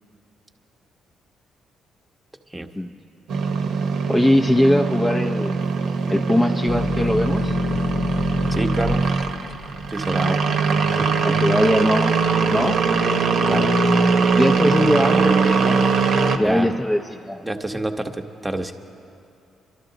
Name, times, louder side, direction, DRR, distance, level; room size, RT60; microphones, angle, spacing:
sound 1, 3.3-16.4, right 4 dB, 75° right, 0.9 m, -21 dB
voice 1, 4.1-5.6 6.1-7.5 10.2-10.4 11.2-12.8 14.3-15.8 16.4-17.4, left 1 dB, 15° left, 3 dB, 0.5 m, -21 dB
sound 2, 6.7-13.9 14.4-15.1, left 4 dB, 55° left, 0.7 m, -33 dB
voice 2, 8.5-9.0 9.9-10.3 10.9-11.2 13.5-13.7 16.4-16.7 17.4-18.7, right 1 dB, 15° right, 5 dB, 0.9 m, -27 dB
23.5 x 12.5 x 3.9 m, 2.5 s
cardioid pair, 90°, 0 cm